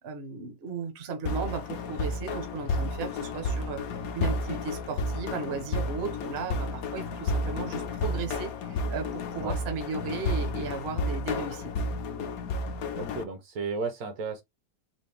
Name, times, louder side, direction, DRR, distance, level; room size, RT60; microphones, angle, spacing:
voice 1, 0.0-11.7, right 5 dB, 45° right, 0.9 m, -36 dB
sound 1, 1.3-13.2, left 2 dB, 65° left, 1.0 m, -31 dB
voice 2, 13.0-14.4, right 4 dB, 65° right, 1.3 m, -33 dB
4.2 x 2.2 x 3.3 m
omnidirectional pair, 1.9 m